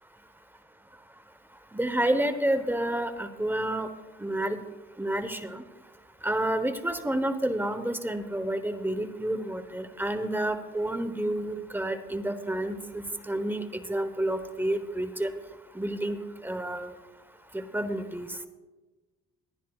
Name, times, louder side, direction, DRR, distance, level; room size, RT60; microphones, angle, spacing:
voice 1, 1.7-3.9 4.2-4.6 5.0-5.6 6.2-15.3 15.7-16.2 16.4-16.9 17.5-18.3, right 1 dB, 5° right, 9 dB, 1.0 m, -29 dB
21.5 x 10.0 x 2.4 m, 1.2 s
cardioid pair, 90°, 30 cm